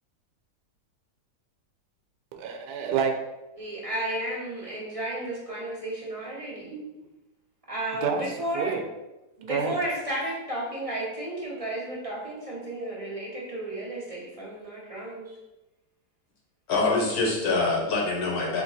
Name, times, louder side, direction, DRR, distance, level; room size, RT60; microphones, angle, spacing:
voice 1, 2.3-3.1 6.7-7.1 8.0-8.2 8.5-8.8 9.5-9.8, right 6 dB, 75° right, 4 dB, 1.1 m, -28 dB
voice 2, 3.6-6.7 7.7-8.8 9.4-15.4, right 1 dB, 30° right, -5 dB, 0.7 m, -33 dB
voice 3, 16.7-18.6, left 3 dB, 75° left, -2 dB, 1.3 m, -25 dB
3.6 x 2.9 x 4.0 m, 1.0 s
omnidirectional pair, 1.7 m